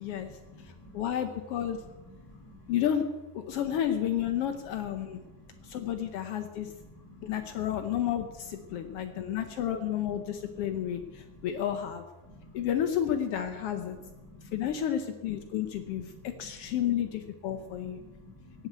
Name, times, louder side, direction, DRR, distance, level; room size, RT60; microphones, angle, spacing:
voice 1, 0.0-1.0 2.0-2.7 5.1-5.8 6.5-7.6 8.7-9.4 10.4-11.5 12.2-12.7 14.0-14.5 15.9-16.2 17.5-18.7, left 1 dB, 10° left, 2 dB, 2.7 m, -52 dB
voice 2, 0.6-1.8 2.7-3.1 3.3-5.2 5.6-6.7 7.2-12.0 12.5-14.0 14.4-18.0, left 10 dB, 85° left, 7 dB, 1.3 m, -31 dB
17.0 x 8.2 x 8.0 m, 1.1 s
omnidirectional pair, 3.8 m